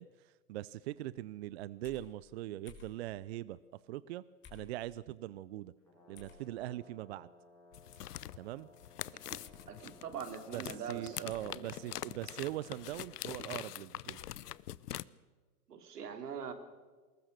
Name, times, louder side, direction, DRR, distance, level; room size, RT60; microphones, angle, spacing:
voice 1, 0.0-3.6 3.9-4.2 4.5-5.7 6.1-7.3 8.4-8.7 10.5-14.2, right 15 dB, 45° right, 19 dB, 0.5 m, -41 dB
sound 1, 1.8-2.1 2.7-3.0 4.4-4.7 6.1-6.4 7.9-8.1 9.4-9.7 11.3-11.5 12.9-13.1 14.2-14.4, left 6 dB, 25° left, 4.0 m, -56 dB
Brass instrument, 5.8-12.9, left 1 dB, 5° left, 6.2 m, -60 dB
sound 2, 7.7-15.0, left 12 dB, 80° left, 0.7 m, -44 dB
voice 2, 9.7-11.7 15.7-16.5, right 7 dB, 80° right, 8 dB, 2.9 m, -43 dB
21.0 x 19.0 x 6.5 m, 1.4 s
hypercardioid pair, 125°, 46 cm